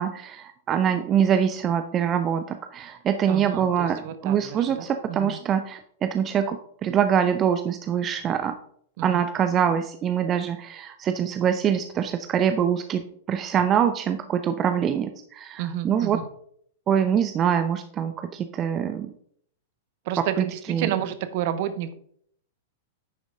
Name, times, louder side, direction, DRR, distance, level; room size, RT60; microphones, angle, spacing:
voice 1, 0.0-8.6 9.0-13.0 13.3-16.2 16.9-19.1 20.7-20.9, right 8 dB, 30° right, 8 dB, 0.6 m, -24 dB
voice 2, 3.3-5.4 9.0-9.2 15.6-16.3 20.0-21.9, right 10 dB, 50° right, 11 dB, 0.9 m, -31 dB
10.5 x 6.2 x 3.7 m, 0.64 s
figure-of-eight pair, 100°, 0 cm